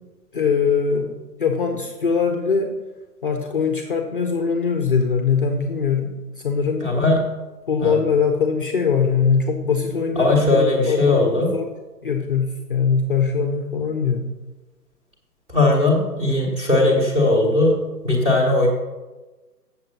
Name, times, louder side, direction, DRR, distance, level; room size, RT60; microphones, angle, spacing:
voice 1, 0.3-2.7 3.2-6.1 6.4-6.8 7.7-11.7 12.0-14.3, left 6 dB, 30° left, 3 dB, 0.8 m, -22 dB
voice 2, 6.8-7.2 7.8-8.0 10.1-11.5 15.5-17.8 18.0-18.7, left 2 dB, 10° right, -3 dB, 1.5 m, -18 dB
7.7 x 7.1 x 5.7 m, 1.2 s
figure-of-eight pair, 145°, 49 cm